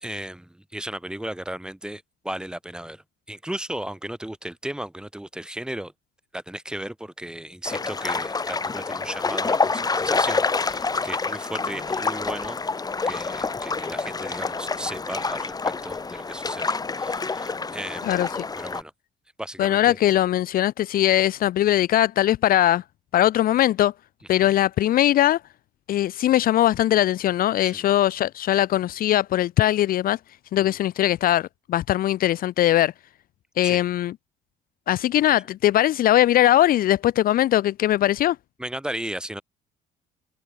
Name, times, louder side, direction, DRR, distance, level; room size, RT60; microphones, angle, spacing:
voice 1, 0.0-5.9 6.3-18.0 18.6-18.9 19.4-20.0 24.3-24.5 27.6-27.8 30.6-30.8 33.6-33.9 38.6-39.4, right 1 dB, 5° right, 2.8 m, -35 dB
sound 1, 7.6-18.8, left 4 dB, 20° left, 3.2 m, -27 dB
voice 2, 18.0-18.4 19.6-22.8 23.1-23.9 24.3-25.4 25.9-30.2 30.5-32.9 33.6-34.1 34.9-38.4, left 13 dB, 60° left, 0.7 m, -20 dB
open air
cardioid pair, 110°, 17 cm